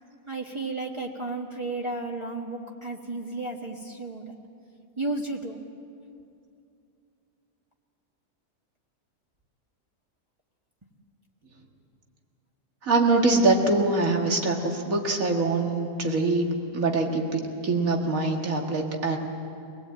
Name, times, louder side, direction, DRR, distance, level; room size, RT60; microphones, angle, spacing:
voice 1, 0.3-4.3 5.0-5.6, right 2 dB, 20° right, -2 dB, 1.5 m, -33 dB
voice 2, 12.8-16.5 16.7-19.2, right 3 dB, 85° right, 2 dB, 2.4 m, -24 dB
24.5 x 19.0 x 8.8 m, 2.6 s
omnidirectional pair, 1.4 m